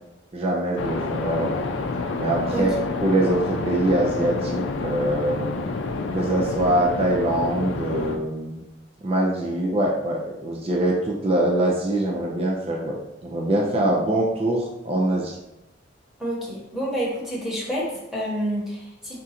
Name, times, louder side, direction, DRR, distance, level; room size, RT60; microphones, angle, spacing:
voice 1, 0.3-1.6 2.2-2.7 3.0-5.5 6.1-8.6 9.0-15.4, right 1 dB, 30° right, -2 dB, 0.5 m, -23 dB
sound 1, 0.8-8.2, left 3 dB, 80° left, 0.4 m, -28 dB
voice 2, 16.2-19.2, equal, ahead, -6 dB, 1.1 m, -28 dB
3.7 x 2.5 x 4.2 m, 0.91 s
head